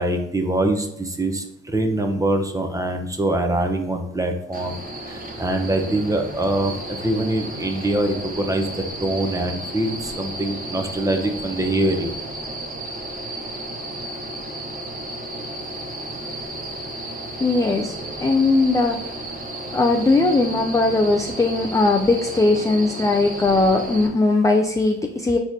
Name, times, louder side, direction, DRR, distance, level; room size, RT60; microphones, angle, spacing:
voice 1, 0.0-4.8 5.1-8.7 9.0-12.1, right 1 dB, 10° right, 4 dB, 0.7 m, -23 dB
sound 1, 4.5-24.1, right 1 dB, 30° right, 0.9 m, -33 dB
voice 2, 17.4-17.9 18.2-19.0 19.7-25.4, left 3 dB, 10° left, 3 dB, 0.3 m, -19 dB
4.7 x 4.0 x 2.7 m, 0.81 s
cardioid pair, 90°, 30 cm